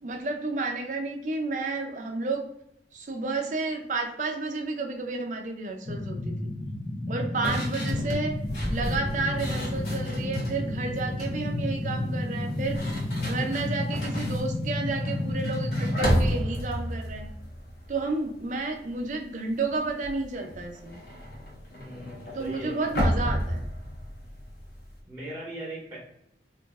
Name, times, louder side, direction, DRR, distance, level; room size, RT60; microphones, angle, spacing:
voice 1, 0.0-2.5 2.9-6.3 7.1-8.4 8.6-12.8 13.2-17.3 17.9-21.0 22.3-23.6, right 3 dB, 45° right, 4 dB, 0.5 m, -31 dB
sound 1, 5.9-16.4, left 1 dB, 25° left, 0.3 m, -31 dB
sound 2, 7.4-10.6 11.0-11.4 12.3-18.6 18.9-19.2 19.5-25.0, equal, 65° left, 1.0 m, -32 dB
sound 3, 8.4-16.0, left 2 dB, 45° left, 0.9 m, -48 dB
voice 2, 21.7-22.8 25.1-26.0, right 1 dB, 15° right, -4 dB, 0.7 m, -39 dB
3.9 x 2.5 x 2.3 m, 0.75 s
head